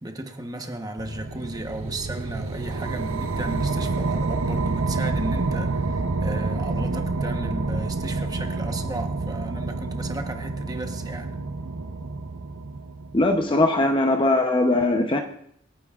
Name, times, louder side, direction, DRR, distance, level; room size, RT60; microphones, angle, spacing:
voice 1, 0.0-11.3, right 1 dB, 20° right, 1.0 m, -35 dB
sound 1, 1.0-13.5, right 3 dB, 65° right, 0.7 m, -28 dB
voice 2, 13.1-15.2, left 2 dB, 25° left, 0.7 m, -20 dB
26.5 x 9.1 x 2.4 m
head